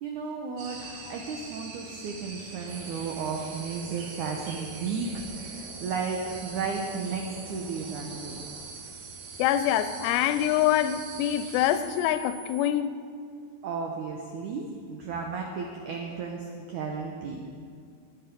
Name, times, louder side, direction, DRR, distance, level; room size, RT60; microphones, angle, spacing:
voice 1, 0.0-8.4 13.6-17.4, right 5 dB, 90° right, 1.7 m, -34 dB
sound 1, 0.6-11.8, right 3 dB, 60° right, 2.2 m, -44 dB
sound 2, 2.6-8.6, right 2 dB, 30° right, 1.3 m, -49 dB
sound 3, 2.7-12.7, right 8 dB, 10° left, 2.7 m, -47 dB
voice 2, 9.4-13.0, left 11 dB, 90° left, 2.7 m, -25 dB
19.5 x 7.4 x 5.2 m
omnidirectional pair, 4.8 m